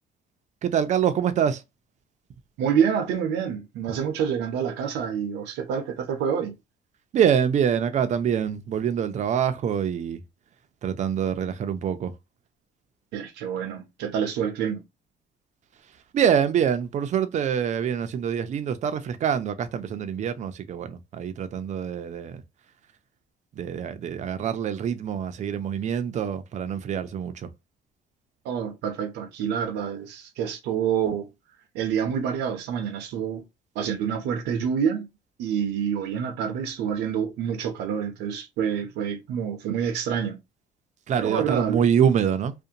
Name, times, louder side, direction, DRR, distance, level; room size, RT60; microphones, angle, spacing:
voice 1, 0.6-1.6 7.1-10.2 10.8-12.1 16.1-22.4 23.6-27.5 41.1-42.5, right 8 dB, 45° right, 0.5 m, -25 dB
voice 2, 2.6-6.6 13.1-14.8 28.4-31.3 31.7-33.4 33.7-35.1 35.4-40.4 41.2-41.9, right 8 dB, 85° right, 0.7 m, -27 dB
2.5 x 2.2 x 2.7 m
cardioid pair, 110°, 17 cm